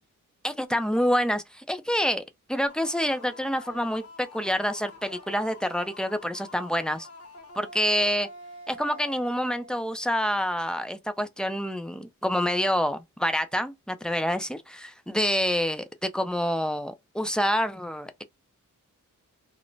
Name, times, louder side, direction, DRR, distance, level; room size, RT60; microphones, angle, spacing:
voice 1, 0.4-2.2 2.5-7.1 7.6-8.3 8.7-18.3, equal, ahead, 0.4 m, -27 dB
sound 1, 2.7-10.2, left 1 dB, 45° left, 1.1 m, -47 dB
2.5 x 2.1 x 3.1 m
cardioid pair, 70°, 35 cm